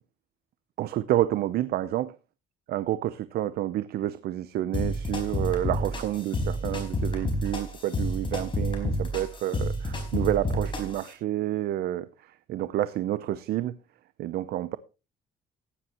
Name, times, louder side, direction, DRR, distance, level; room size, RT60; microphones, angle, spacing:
voice 1, 0.8-2.1 2.7-13.8 14.2-14.8, right 13 dB, 65° right, 0.7 m, -29 dB
sound 1, 4.7-11.1, left 1 dB, 30° left, 4.5 m, -30 dB
15.5 x 10.5 x 3.0 m
cardioid pair, 110°, 17 cm